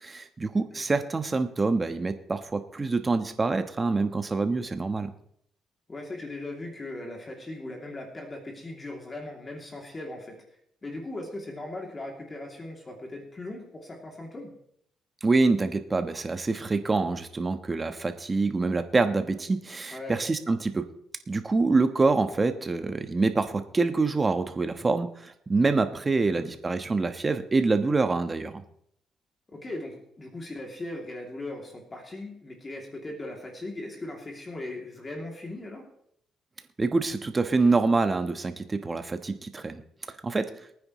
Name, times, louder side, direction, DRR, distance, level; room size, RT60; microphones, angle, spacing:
voice 1, 0.0-5.1 15.2-20.8 21.3-28.6 36.8-39.8 40.2-40.5, right 3 dB, 25° right, 8 dB, 1.1 m, -26 dB
voice 2, 5.9-10.4 10.8-14.5 19.9-20.2 26.2-26.5 29.5-35.8, left 2 dB, 30° left, 0 dB, 2.8 m, -39 dB
23.0 x 9.6 x 3.1 m, 0.72 s
cardioid pair, 90°, 0 cm